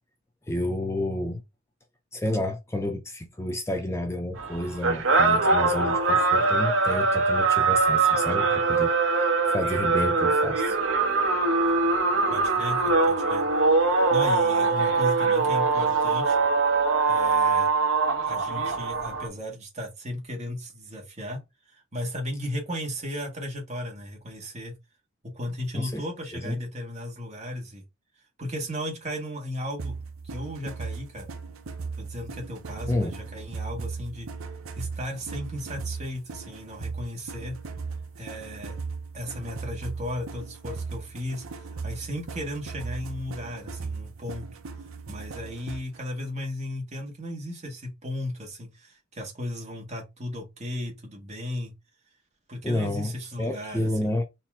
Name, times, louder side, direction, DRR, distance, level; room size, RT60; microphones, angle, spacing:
voice 1, 0.5-1.4 2.1-8.9 9.2-10.8 25.7-26.0 26.3-26.6 32.9-33.2 52.6-53.1 53.4-54.2, left 1 dB, 15° left, 0.6 m, -30 dB
sound 1, 4.4-19.3, right 4 dB, 70° right, 1.0 m, -22 dB
voice 2, 12.3-13.5 14.1-16.4 17.1-17.7 18.3-24.7 25.2-27.8 28.4-30.0 30.2-31.3 32.0-34.3 34.8-37.6 38.2-38.8 39.1-44.5 45.1-51.7 52.5-54.1, left 1 dB, 35° right, 1.7 m, -35 dB
sound 2, 29.8-46.0, right 4 dB, 85° right, 0.7 m, -37 dB
4.2 x 2.9 x 3.6 m
head